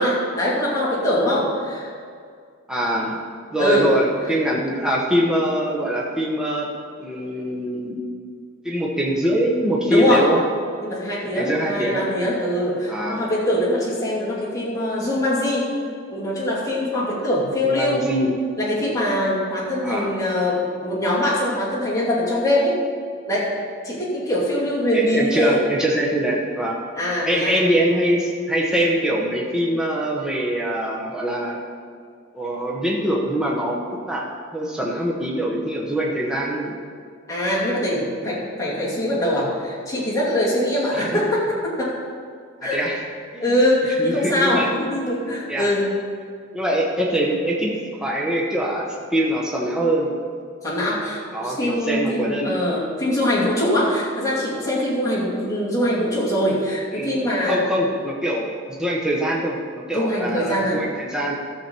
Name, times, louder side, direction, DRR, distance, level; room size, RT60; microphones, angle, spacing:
voice 1, 0.0-1.9 3.6-3.9 4.3-4.4 9.9-10.3 10.8-15.7 16.1-18.1 18.6-22.8 23.3-23.5 23.8-25.6 26.9-27.6 37.3-41.9 42.6-42.8 43.4-45.9 50.6-57.7 59.9-60.8, left 1 dB, 15° left, -7 dB, 2.4 m, -22 dB
voice 2, 2.7-3.2 3.5-6.7 7.0-8.0 8.6-10.4 11.4-12.0 12.9-13.2 17.6-18.3 19.8-20.1 24.9-26.8 27.2-31.6 32.3-33.8 34.1-34.3 34.5-36.7 40.9-41.2 42.6-43.0 43.3-43.5 44.0-44.7 45.5-45.7 46.5-47.7 48.0-50.1 51.3-52.5 56.9-61.3, right 1 dB, 5° right, -4 dB, 1.0 m, -23 dB
12.5 x 7.0 x 4.5 m, 2.2 s
head